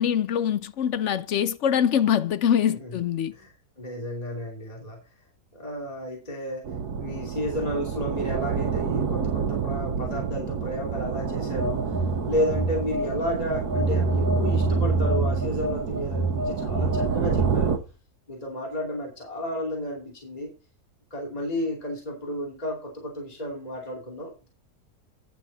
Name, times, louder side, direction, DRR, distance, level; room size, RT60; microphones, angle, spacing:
voice 1, 0.0-3.3, left 9 dB, 65° left, 0.8 m, -24 dB
voice 2, 3.8-5.0 5.5-6.6 6.9-12.0 12.3-17.8 18.3-20.5 21.1-24.5, equal, 25° left, 2.8 m, -32 dB
sound 1, 6.6-17.8, right 6 dB, 80° right, 1.6 m, -28 dB
Telephone, 11.5-13.3 13.7-17.8, right 2 dB, 10° right, 3.5 m, -27 dB
10.5 x 6.8 x 4.1 m
omnidirectional pair, 1.7 m